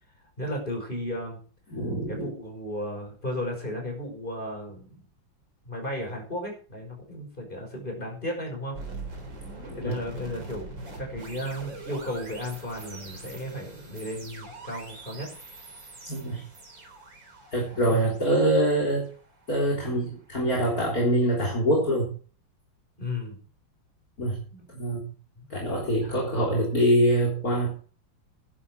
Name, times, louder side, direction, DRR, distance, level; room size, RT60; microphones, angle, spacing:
voice 1, 0.4-1.4 2.1-5.0 5.6-8.8 9.7-15.3 18.0-18.1 23.0-23.4 24.5-24.7 25.4-25.5 26.0-26.5, left 1 dB, 25° left, 1 dB, 5.9 m, -34 dB
voice 2, 1.7-2.3 9.7-9.9 16.1-16.4 17.5-19.1 19.5-22.2 24.2-24.4 24.7-25.1 25.5-27.7, right 1 dB, 45° left, -1 dB, 4.0 m, -24 dB
sound 1, 8.7-19.8, right 2 dB, 65° right, 4.3 m, -43 dB
11.0 x 11.0 x 6.4 m, 0.40 s
omnidirectional pair, 2.2 m